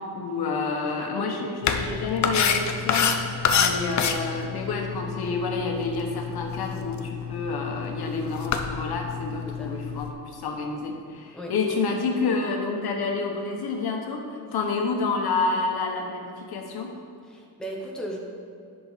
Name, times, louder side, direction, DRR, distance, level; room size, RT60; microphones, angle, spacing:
voice 1, 0.0-16.9, left 4 dB, 75° left, 2 dB, 1.2 m, -29 dB
sound 1, 1.6-10.1, left 6 dB, 45° left, 0.6 m, -28 dB
voice 2, 17.2-18.2, right 1 dB, ahead, -2 dB, 0.9 m, -36 dB
10.5 x 6.1 x 4.1 m, 2.5 s
wide cardioid pair, 175°, 38 cm